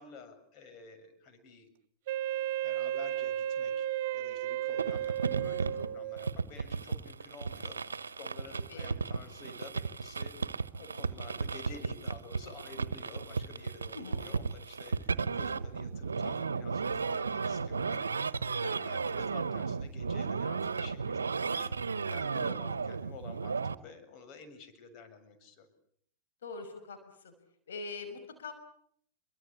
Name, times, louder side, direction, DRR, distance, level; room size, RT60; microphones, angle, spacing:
voice 1, 0.0-1.7 2.3-10.5 10.8-25.7, left 4 dB, 45° left, 9 dB, 7.0 m, -51 dB
Wind instrument woodwind instrument, 2.1-6.3, right 12 dB, 60° right, 1.5 m, -34 dB
sound 1, 4.8-23.7, right 5 dB, 85° right, 1.1 m, -34 dB
voice 2, 13.9-14.3 18.6-18.9 26.4-27.0 27.2-27.3 27.7-28.5, left 4 dB, 75° left, 7 dB, 5.8 m, -43 dB
28.0 x 24.0 x 8.8 m, 0.66 s
hypercardioid pair, 100°, 0 cm